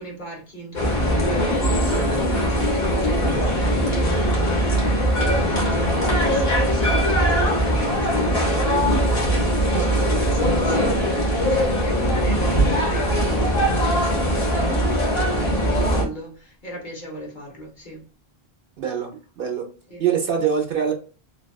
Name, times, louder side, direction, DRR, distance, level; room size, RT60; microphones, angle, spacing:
voice 1, 0.0-18.1 19.9-20.0, equal, 50° left, 1.1 m, -36 dB
sound 1, 0.7-16.0, equal, 65° left, 1.4 m, -21 dB
voice 2, 18.8-19.1 19.4-19.6 20.0-20.9, right 7 dB, 60° right, 0.8 m, -23 dB
3.3 x 2.3 x 2.3 m
omnidirectional pair, 1.1 m